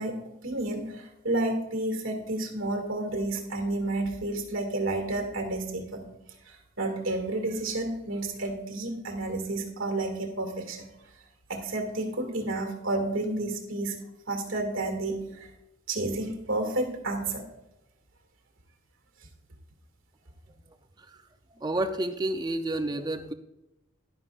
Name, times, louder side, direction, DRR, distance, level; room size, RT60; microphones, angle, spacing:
voice 1, 0.0-6.0 6.5-10.9 11.5-14.0 14.3-15.5 15.9-17.4, right 2 dB, 75° right, 4 dB, 1.9 m, -31 dB
voice 2, 21.6-23.3, right 1 dB, 20° right, 8 dB, 0.4 m, -30 dB
11.5 x 10.5 x 2.4 m, 0.92 s
head